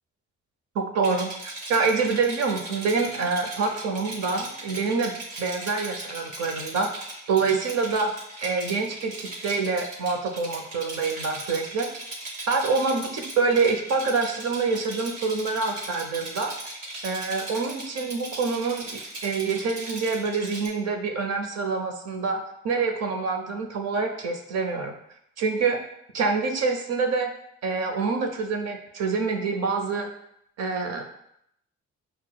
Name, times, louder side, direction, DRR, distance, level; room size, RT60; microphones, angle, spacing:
voice 1, 0.7-6.9 7.3-8.1 8.4-11.9 12.5-16.5 17.0-24.9 25.4-25.8 26.1-27.3 27.6-30.1 30.6-31.0, right 4 dB, 60° right, 4 dB, 0.6 m, -26 dB
Rattle, 1.0-20.7, right 2 dB, 80° right, 1.3 m, -38 dB
5.8 x 2.0 x 2.2 m, 0.73 s
cardioid pair, 90°, 30 cm